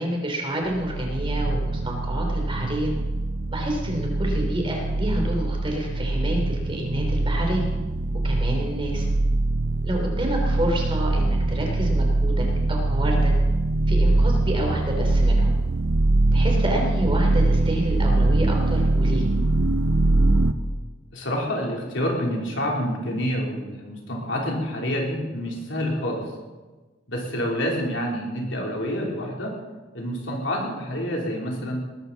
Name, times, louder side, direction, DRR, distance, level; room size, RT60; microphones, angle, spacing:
voice 1, 0.0-2.9 3.5-7.7 8.2-9.1 9.8-13.3 13.9-15.5 16.3-19.3, equal, 30° right, 1 dB, 3.3 m, -28 dB
sound 1, 0.7-20.5, right 2 dB, 85° right, 0.8 m, -22 dB
voice 2, 21.1-26.3 27.1-29.5 29.9-31.8, equal, 75° left, -1 dB, 3.4 m, -27 dB
19.5 x 13.0 x 4.1 m, 1.3 s
head